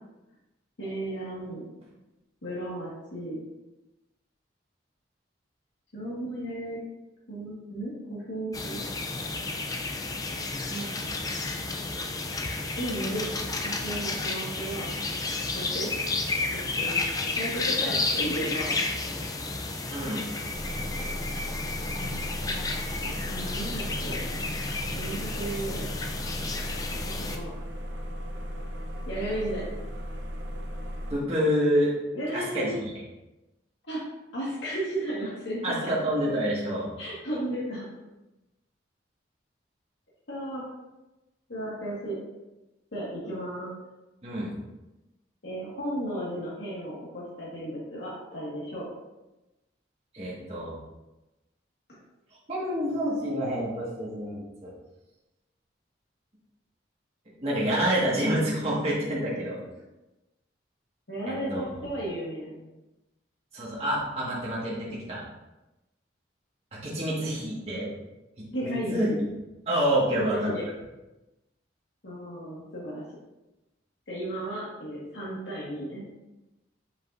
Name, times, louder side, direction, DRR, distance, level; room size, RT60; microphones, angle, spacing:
voice 1, 0.8-1.6 2.4-3.4 5.9-6.8 7.3-8.8 10.7-10.9 12.7-13.3 13.6-14.9 15.5-15.9 16.5-18.7 22.0-24.2 24.9-25.9 27.0-27.5 29.1-29.6 32.1-32.8 33.8-34.0 34.3-35.9 37.0-37.8 40.3-40.6 41.5-42.1 42.9-43.7 45.4-48.8 61.1-62.7 68.5-69.2 70.1-70.6 72.0-73.0 74.1-76.0, right 1 dB, 80° left, -6 dB, 1.8 m, -34 dB
sound 1, 8.5-27.4, left 3 dB, 20° left, 0.4 m, -31 dB
voice 2, 19.9-20.3 31.1-31.9 32.3-32.9 35.6-36.9 44.2-44.5 50.1-50.8 52.5-54.7 57.4-59.6 61.3-61.6 63.5-65.2 66.7-67.9 68.4-69.1 69.7-70.4, equal, 35° right, -6 dB, 1.7 m, -28 dB
sound 2, 20.5-31.1, equal, 75° right, 0.7 m, -36 dB
7.4 x 5.2 x 2.6 m, 1.0 s
head